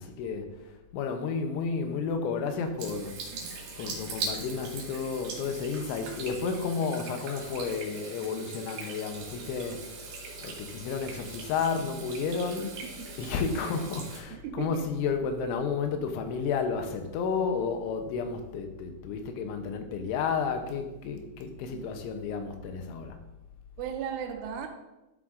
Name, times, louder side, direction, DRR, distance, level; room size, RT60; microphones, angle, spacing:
voice 1, 0.0-3.2 3.8-10.0 10.4-12.7 13.2-23.2, left 5 dB, 80° left, 3.1 m, -32 dB
Water tap faucet / Sink (filling or washing), 2.8-14.2, right 4 dB, 70° right, 4.2 m, -41 dB
voice 2, 14.3-14.9 21.7-21.9 23.8-24.7, right 8 dB, 85° right, 3.5 m, -36 dB
13.0 x 7.5 x 2.5 m
omnidirectional pair, 5.4 m